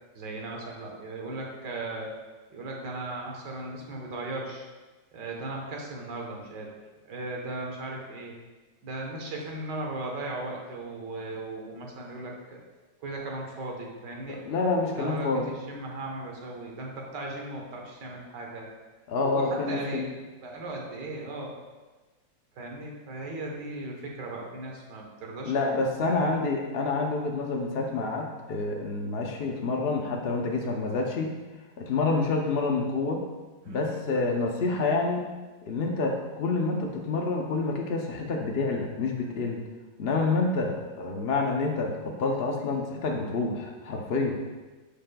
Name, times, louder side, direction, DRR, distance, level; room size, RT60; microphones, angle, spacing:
voice 1, 0.2-2.2 2.5-4.7 5.1-6.7 7.0-8.3 8.8-12.6 13.0-14.4 15.0-18.7 19.2-20.1 20.4-21.6 22.5-26.4 33.6-33.9, right 2 dB, 70° right, -1 dB, 1.7 m, -37 dB
voice 2, 14.4-15.5 19.1-20.0 25.4-31.3 31.8-33.2 33.7-35.2 35.6-39.6 40.0-44.4, left 3 dB, 75° left, 1 dB, 0.5 m, -28 dB
11.0 x 5.1 x 2.3 m, 1.2 s
omnidirectional pair, 2.0 m